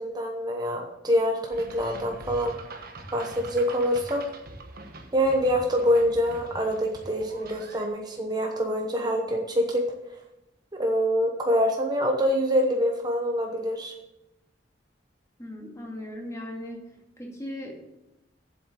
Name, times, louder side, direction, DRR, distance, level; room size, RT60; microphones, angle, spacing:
voice 1, 0.0-2.5 3.1-4.2 5.1-9.8 10.7-13.9, equal, 20° right, 2 dB, 1.0 m, -25 dB
sound 1, 1.5-7.9, right 2 dB, 50° right, 1.3 m, -44 dB
voice 2, 15.4-16.8 17.2-17.9, left 1 dB, 15° left, 0 dB, 2.2 m, -38 dB
7.8 x 7.3 x 8.2 m, 0.91 s
head